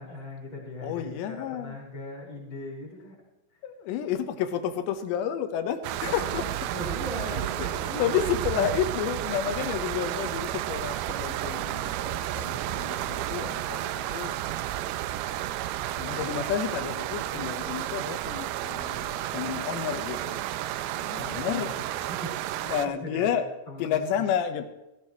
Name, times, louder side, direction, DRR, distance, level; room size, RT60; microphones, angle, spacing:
voice 1, 0.0-3.2 6.2-8.3 21.1-21.7 22.1-22.5 22.8-23.3 23.7-24.0, left 1 dB, 30° left, -4 dB, 5.2 m, -39 dB
voice 2, 0.8-1.8 3.6-6.7 7.3-14.9 16.0-21.7 22.6-23.5 23.8-24.7, left 9 dB, 90° left, 8 dB, 3.3 m, -31 dB
sound 1, 5.8-22.9, right 13 dB, 80° right, 2.4 m, -32 dB
16.5 x 16.5 x 3.1 m, 0.97 s
omnidirectional pair, 4.9 m